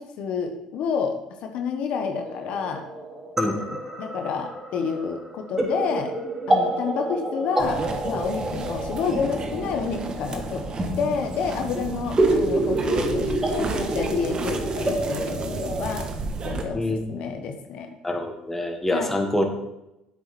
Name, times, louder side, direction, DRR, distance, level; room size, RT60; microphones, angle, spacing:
voice 1, 0.0-2.8 3.6-6.1 6.5-7.8 8.0-10.6 11.0-16.1 16.4-17.9 18.9-19.2, left 6 dB, 65° left, 4 dB, 1.4 m, -29 dB
sound 1, 2.2-16.0, right 1 dB, 20° right, 3.0 m, -28 dB
sound 2, 7.6-16.6, right 4 dB, 40° right, 1.5 m, -33 dB
voice 2, 18.0-19.5, left 1 dB, 10° left, 3 dB, 1.8 m, -25 dB
10.5 x 8.2 x 4.4 m, 0.92 s
supercardioid pair, 90°, 2 cm